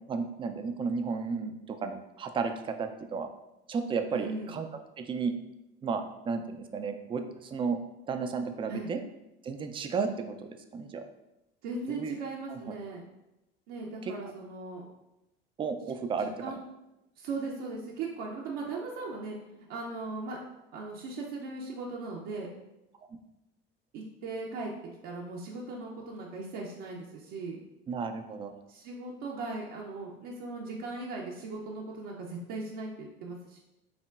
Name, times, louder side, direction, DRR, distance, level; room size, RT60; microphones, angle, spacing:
voice 1, 0.1-3.3 3.7-4.7 5.0-5.4 5.8-7.8 8.1-9.0 9.4-11.1 11.9-12.1 12.5-12.7 14.0-14.1 15.6-16.5 27.9-28.5, right 5 dB, 15° right, 7 dB, 0.3 m, -33 dB
voice 2, 4.1-4.5 8.7-8.9 11.6-13.0 13.7-14.8 16.2-16.6 17.2-19.4 19.7-20.4 20.7-22.5 23.9-24.7 25.0-27.6 28.7-33.6, right 3 dB, 60° right, -2 dB, 0.7 m, -38 dB
5.7 x 2.1 x 2.4 m, 0.93 s
hypercardioid pair, 70°, 31 cm